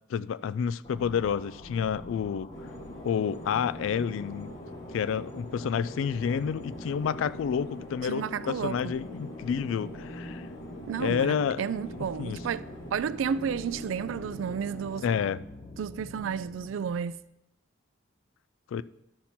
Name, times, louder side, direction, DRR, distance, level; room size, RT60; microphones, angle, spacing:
voice 1, 0.1-2.5 3.0-4.5 4.9-10.5 11.0-11.6 12.2-12.4 15.0-15.4 18.7-18.8, left 7 dB, 85° left, 0.3 m, -29 dB
sound 1, 0.8-17.0, left 1 dB, 30° left, 0.8 m, -46 dB
sound 2, 2.5-15.3, left 1 dB, 65° left, 1.5 m, -44 dB
voice 2, 8.1-8.9 10.9-15.0 15.8-17.2, right 7 dB, 85° right, 0.3 m, -32 dB
12.0 x 4.3 x 5.8 m
head